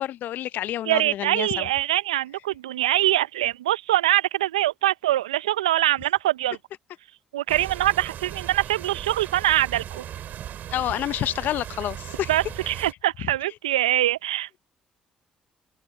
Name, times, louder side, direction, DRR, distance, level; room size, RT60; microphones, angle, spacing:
voice 1, 0.0-1.7 10.7-12.3 12.6-12.7, left 12 dB, 65° left, 0.9 m, -28 dB
voice 2, 0.9-6.6 7.3-10.0 12.3-14.6, right 14 dB, 85° right, 0.8 m, -23 dB
sound 1, 7.5-12.9, right 10 dB, 60° right, 3.0 m, -37 dB
open air
hypercardioid pair, 45°, 3 cm